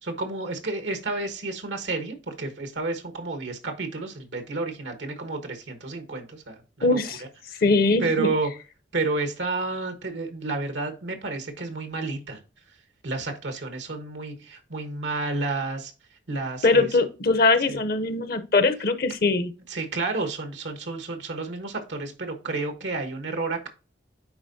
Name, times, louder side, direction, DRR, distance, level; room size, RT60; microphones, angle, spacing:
voice 1, 0.0-7.3 8.0-8.5 8.9-12.4 13.0-15.9 16.3-16.9 17.7-17.8 19.7-23.7, right 3 dB, 90° right, 1.2 m, -30 dB
voice 2, 6.8-7.2 7.6-8.3 16.6-19.5, left 3 dB, 55° left, 0.6 m, -21 dB
9.7 x 3.7 x 2.7 m
head